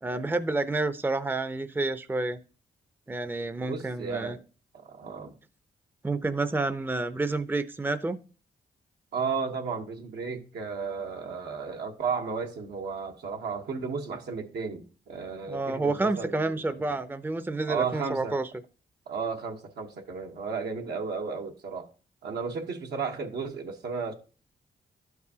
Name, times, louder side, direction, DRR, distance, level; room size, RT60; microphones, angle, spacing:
voice 1, 0.0-2.4 3.1-4.4 6.0-8.2 15.5-18.5, right 2 dB, 10° right, 0.5 m, -29 dB
voice 2, 3.7-4.4 4.7-5.3 9.1-16.9 17.7-18.4 19.1-21.9 22.2-24.1, right 5 dB, 75° right, 1.0 m, -34 dB
12.0 x 4.7 x 2.8 m
cardioid pair, 55°, 17 cm